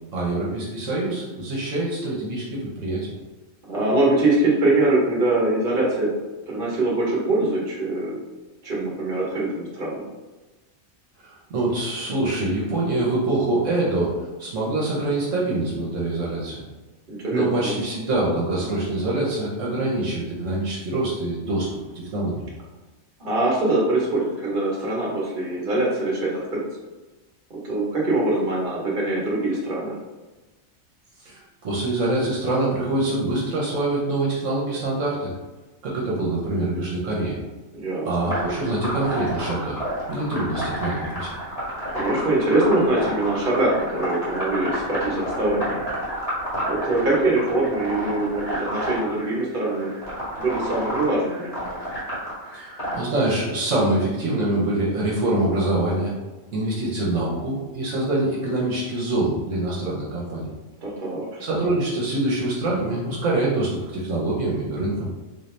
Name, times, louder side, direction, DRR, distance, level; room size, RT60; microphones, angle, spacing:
voice 1, 0.1-3.1 11.2-14.1 14.4-16.6 17.3-21.8 22.0-22.4 31.2-35.3 35.8-37.4 38.0-41.3 52.5-52.7 52.9-56.1 56.5-60.5 61.4-65.1, right 2 dB, 70° right, -5 dB, 1.1 m, -25 dB
voice 2, 3.7-6.1 6.5-8.2 8.6-10.1 17.1-17.7 23.2-26.6 27.5-30.0 37.7-38.3 41.9-45.8 46.6-49.9 50.4-51.6 60.8-61.4, right 2 dB, 45° right, -4 dB, 1.1 m, -23 dB
sound 1, 38.3-53.0, equal, 25° left, 1.3 m, -30 dB
3.8 x 2.7 x 3.2 m, 1.2 s
omnidirectional pair, 1.4 m